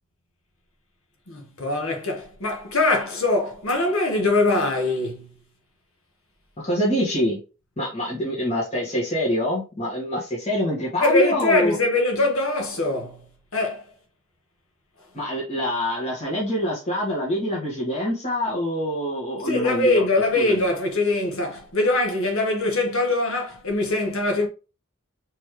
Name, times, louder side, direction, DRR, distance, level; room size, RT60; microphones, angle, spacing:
voice 1, 1.3-5.3 11.0-13.3 13.5-13.9 19.4-24.5, left 2 dB, 65° left, 1.4 m, -22 dB
voice 2, 6.6-7.4 7.8-11.7 15.1-20.0 20.3-20.6, left 1 dB, 30° left, 1.6 m, -25 dB
4.3 x 3.5 x 3.1 m
head